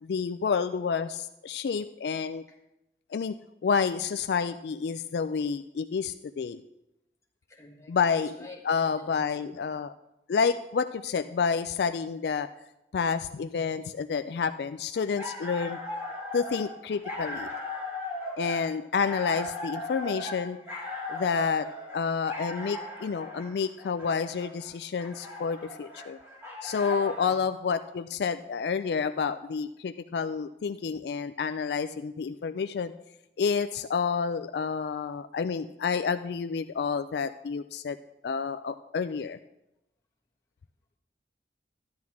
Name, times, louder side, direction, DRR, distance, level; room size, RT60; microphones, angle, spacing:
voice 1, 0.0-2.4 3.1-3.3 3.6-6.6 7.9-8.3 8.6-9.9 10.3-12.5 12.9-15.8 16.3-17.5 18.4-20.6 21.1-26.2 26.6-32.9 33.4-38.0 38.2-39.4, left 5 dB, 70° left, 11 dB, 0.3 m, -29 dB
voice 2, 7.5-7.9 8.3-9.7 27.1-27.4, left 2 dB, 15° left, -1 dB, 1.7 m, -50 dB
sound 1, 14.9-27.4, left 2 dB, 15° right, 2.0 m, -38 dB
13.0 x 10.5 x 3.6 m, 0.88 s
head